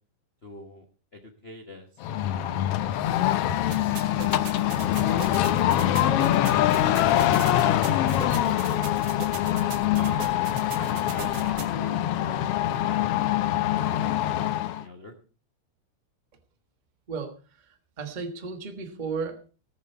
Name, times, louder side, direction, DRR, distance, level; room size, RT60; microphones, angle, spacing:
voice 1, 0.4-0.8 1.1-2.8 3.0-3.4 9.6-10.3 10.8-15.1, left 2 dB, 55° left, 3 dB, 0.6 m, -46 dB
sound 1, 2.0-14.8, left 12 dB, 75° left, 1.4 m, -24 dB
sound 2, 2.1-14.6, equal, 60° right, 2.6 m, -49 dB
sound 3, 3.7-11.7, right 6 dB, 90° right, 3.0 m, -40 dB
voice 2, 17.7-19.5, right 5 dB, 35° right, 6 dB, 0.6 m, -34 dB
17.5 x 7.8 x 4.5 m, 0.36 s
omnidirectional pair, 3.4 m